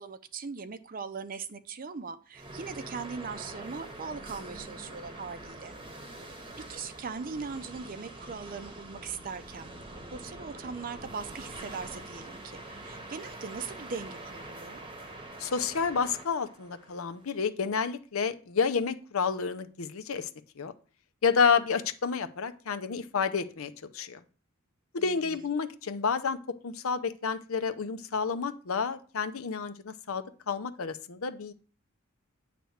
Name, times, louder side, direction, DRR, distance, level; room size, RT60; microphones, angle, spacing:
voice 1, 0.0-5.7 6.7-9.7 10.1-14.8 25.0-25.5, right 5 dB, 40° right, 0.5 m, -40 dB
sound 1, 2.3-17.5, right 2 dB, 25° right, 1.0 m, -45 dB
voice 2, 15.4-20.3 20.6-20.7 21.2-24.2 24.9-31.5, left 5 dB, 80° left, 0.7 m, -30 dB
9.1 x 3.4 x 6.4 m
head